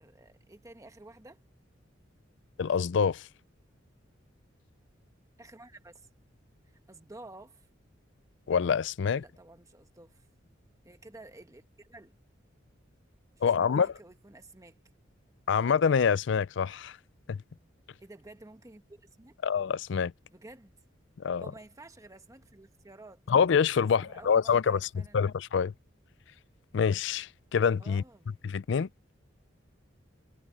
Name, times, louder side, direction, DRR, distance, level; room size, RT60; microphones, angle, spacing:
voice 1, 0.0-1.4 5.4-6.1 6.9-7.7 9.1-10.3 10.8-12.1 13.6-14.8 18.0-19.4 20.3-20.7 21.2-23.2 23.8-25.3 27.8-28.4, right 2 dB, 15° right, 1.1 m, -51 dB
voice 2, 2.6-3.3 8.5-9.2 13.4-13.9 15.5-17.0 17.3-17.4 19.4-20.1 21.2-21.5 23.3-25.7 26.7-28.0 28.4-28.9, left 6 dB, 65° left, 0.4 m, -26 dB
head